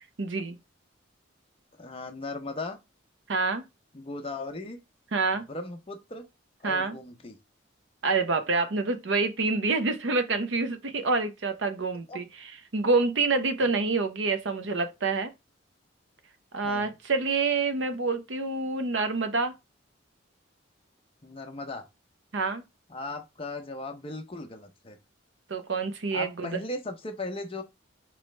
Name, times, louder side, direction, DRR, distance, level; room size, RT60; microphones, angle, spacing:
voice 1, 0.2-0.6 3.3-3.6 5.1-5.4 6.6-7.0 8.0-12.3 12.7-15.3 16.5-19.5 22.3-22.6 25.5-26.6, right 3 dB, 70° right, 0.7 m, -27 dB
voice 2, 1.8-2.8 3.9-4.8 5.3-6.2 6.6-7.4 12.1-12.2 16.6-17.0 21.2-21.9 22.9-25.0 26.1-27.6, left 2 dB, 30° left, 0.6 m, -37 dB
4.1 x 3.0 x 3.2 m
head